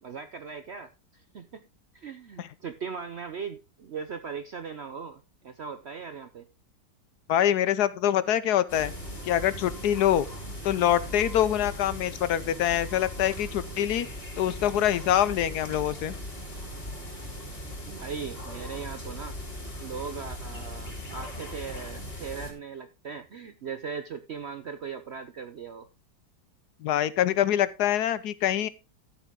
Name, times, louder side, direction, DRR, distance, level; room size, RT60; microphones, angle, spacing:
voice 1, 0.0-1.6 1.9-6.5 17.9-19.4 19.8-25.9, right 6 dB, 60° right, 10 dB, 0.7 m, -39 dB
voice 2, 7.3-8.9 9.2-10.3 10.6-14.1 14.4-16.2 26.8-28.7, left 11 dB, 70° left, 16 dB, 1.2 m, -25 dB
sound 1, 8.7-22.5, left 1 dB, 35° left, 4.0 m, -39 dB
13.0 x 7.1 x 3.7 m, 0.27 s
omnidirectional pair, 1.8 m